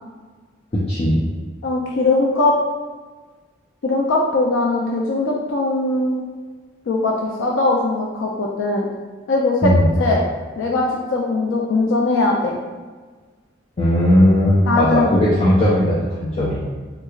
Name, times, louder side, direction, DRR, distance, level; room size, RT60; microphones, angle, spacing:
voice 1, 0.7-1.2 9.6-9.9 13.8-16.6, left 1 dB, 35° left, -7 dB, 0.5 m, -17 dB
voice 2, 1.6-2.6 3.8-6.2 6.9-8.9 9.3-10.2 10.6-12.6 14.7-15.1, left 2 dB, 90° left, -2 dB, 0.4 m, -20 dB
3.4 x 3.0 x 2.3 m, 1.4 s
head